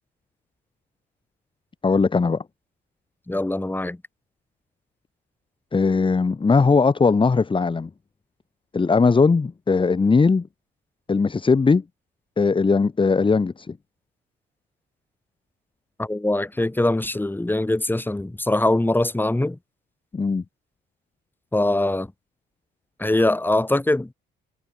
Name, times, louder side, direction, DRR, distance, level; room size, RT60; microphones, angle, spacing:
voice 1, 1.8-2.4 5.7-7.9 8.7-10.5 11.1-11.8 12.4-13.8 20.1-20.4, left 4 dB, 25° left, 1.4 m, -19 dB
voice 2, 3.3-4.0 16.0-19.6 21.5-22.1 23.0-24.1, left 1 dB, 10° left, 2.6 m, -22 dB
cardioid pair, 90°, 20 cm